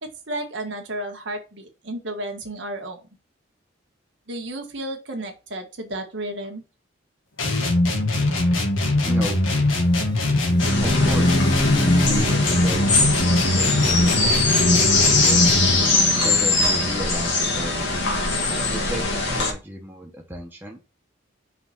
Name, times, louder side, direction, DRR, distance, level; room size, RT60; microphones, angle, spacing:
voice 1, 0.0-3.0 4.3-6.6, right 1 dB, 65° right, 4 dB, 1.5 m, -32 dB
sound 1, 7.4-15.9, left 1 dB, 85° left, 1.7 m, -21 dB
sound 2, 8.7-16.4, left 1 dB, 20° left, 0.5 m, -29 dB
voice 2, 9.0-9.5 10.8-15.4 16.2-18.0 18.7-20.8, equal, 10° right, 0 dB, 1.1 m, -34 dB
sound 3, 10.6-19.5, left 3 dB, 65° left, 2.2 m, -21 dB
5.8 x 3.9 x 5.8 m, 0.30 s
head